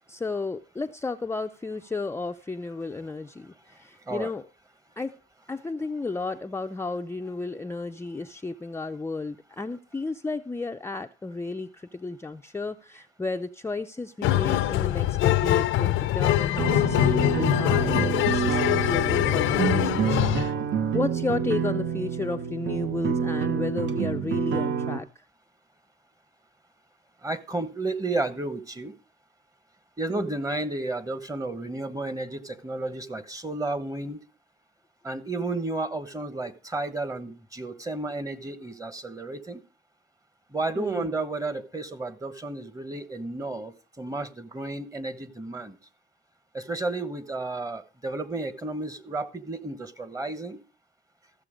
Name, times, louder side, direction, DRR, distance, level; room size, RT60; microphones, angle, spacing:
voice 1, 0.1-4.4 5.0-5.2 5.5-20.2 20.9-25.1 30.1-30.3 40.8-41.1, left 3 dB, 15° left, 0.5 m, -33 dB
sound 1, 14.2-20.5, left 14 dB, 90° left, 0.6 m, -23 dB
sound 2, 16.6-25.0, right 7 dB, 65° right, 1.0 m, -28 dB
voice 2, 27.2-28.9 30.0-34.2 35.0-39.6 40.5-45.8 46.5-50.6, right 2 dB, 15° right, 1.2 m, -32 dB
14.5 x 6.9 x 5.0 m
cardioid pair, 90°, 20 cm